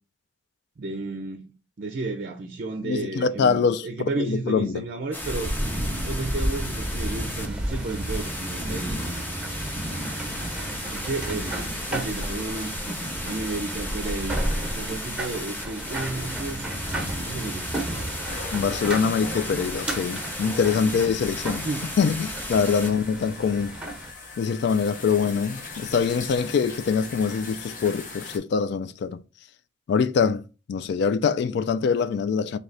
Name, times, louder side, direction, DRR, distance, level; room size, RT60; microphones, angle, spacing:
voice 1, 0.8-1.5 1.8-5.5 6.1-9.2 10.9-12.7 13.2-16.7 17.2-18.2 20.8-20.9 21.6-21.9 22.8-23.0, right 3 dB, 50° right, 0.5 m, -33 dB
voice 2, 2.8-4.8 18.5-21.7 22.0-23.8 24.4-29.2 29.9-30.4 30.7-32.6, left 6 dB, 60° left, 0.3 m, -24 dB
sound 1, 5.1-22.9, left 1 dB, 10° left, 0.6 m, -36 dB
sound 2, 5.2-24.1, right 1 dB, 5° right, 1.0 m, -32 dB
sound 3, 18.3-28.4, left 3 dB, 45° left, 0.8 m, -40 dB
3.2 x 2.8 x 3.9 m
head